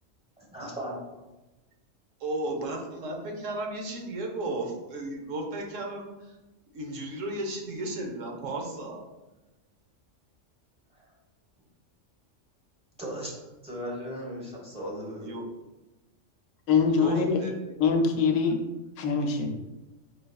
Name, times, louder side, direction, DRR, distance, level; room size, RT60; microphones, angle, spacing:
voice 1, 0.4-1.0 13.0-13.3 13.6-15.4, equal, 5° right, -4 dB, 1.0 m, -36 dB
voice 2, 2.2-6.3 6.7-9.0 15.2-15.5 16.9-17.6, right 2 dB, 85° right, 2 dB, 1.2 m, -34 dB
voice 3, 16.7-17.4 17.8-18.6 19.0-19.6, left 5 dB, 80° left, 4 dB, 1.0 m, -23 dB
4.7 x 4.5 x 2.3 m, 1.0 s
omnidirectional pair, 1.3 m